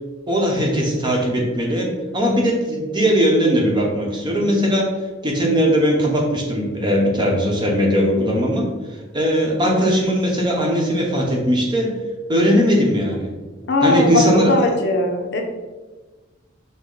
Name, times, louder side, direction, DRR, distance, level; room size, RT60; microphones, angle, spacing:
voice 1, 0.3-4.9 5.2-8.7 9.1-12.0 12.3-13.3 13.8-14.6, equal, 25° right, -1 dB, 0.9 m, -19 dB
voice 2, 13.7-15.4, left 2 dB, 60° left, 2 dB, 0.7 m, -19 dB
6.3 x 2.2 x 3.8 m, 1.2 s
head